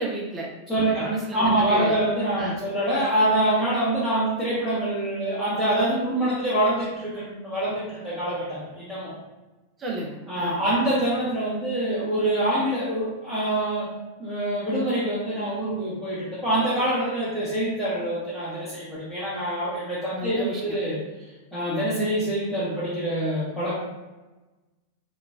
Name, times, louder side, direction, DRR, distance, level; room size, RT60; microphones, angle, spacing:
voice 1, 0.0-2.0 2.4-2.6 9.8-10.7 20.1-20.8, right 2 dB, 25° right, -2 dB, 0.5 m, -32 dB
voice 2, 0.7-9.2 10.3-13.9 14.2-21.0 21.5-23.8, right 1 dB, 5° left, -13 dB, 0.8 m, -25 dB
2.9 x 2.2 x 2.2 m, 1.1 s
figure-of-eight pair, 90°, 0 cm